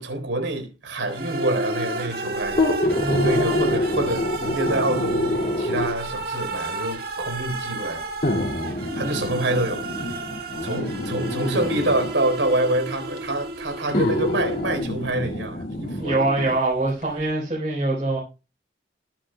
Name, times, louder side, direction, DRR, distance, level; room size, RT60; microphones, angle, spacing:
voice 1, 0.0-2.6 3.1-8.0 8.9-10.2 10.6-16.2, right 2 dB, 90° right, 4.1 m, -26 dB
sound 1, 1.1-14.9, right 2 dB, 55° right, 1.9 m, -32 dB
sound 2, 2.5-6.1 7.1-7.2 8.2-12.1 13.2-13.3 13.9-16.6 17.0-17.1, left 1 dB, 50° left, 2.4 m, -26 dB
voice 2, 3.0-3.8 9.0-9.2 16.0-18.2, right 2 dB, 35° right, 4.2 m, -24 dB
21.0 x 8.7 x 2.3 m
head